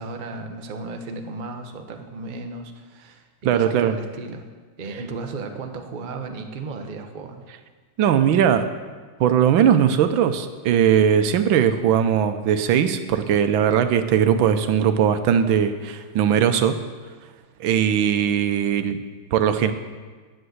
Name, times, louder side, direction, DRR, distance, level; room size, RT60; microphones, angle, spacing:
voice 1, 0.0-4.5 4.8-7.5, right 3 dB, 40° right, 5 dB, 0.7 m, -35 dB
voice 2, 3.4-3.9 8.0-8.7 9.2-16.8 17.6-19.0 19.3-19.7, right 8 dB, 75° right, 9 dB, 1.4 m, -19 dB
10.5 x 7.7 x 7.9 m, 1.4 s
omnidirectional pair, 2.2 m